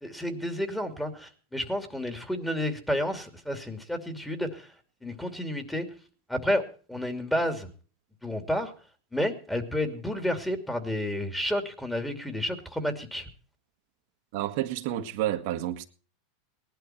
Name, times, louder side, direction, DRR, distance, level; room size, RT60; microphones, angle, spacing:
voice 1, 0.0-4.7 5.0-5.9 6.3-6.6 6.9-7.7 8.2-8.7 9.1-13.3, left 1 dB, 5° left, 2.7 m, -30 dB
voice 2, 14.3-15.8, right 13 dB, 65° right, 1.7 m, -30 dB
19.0 x 11.5 x 4.5 m
supercardioid pair, 120°, 0 cm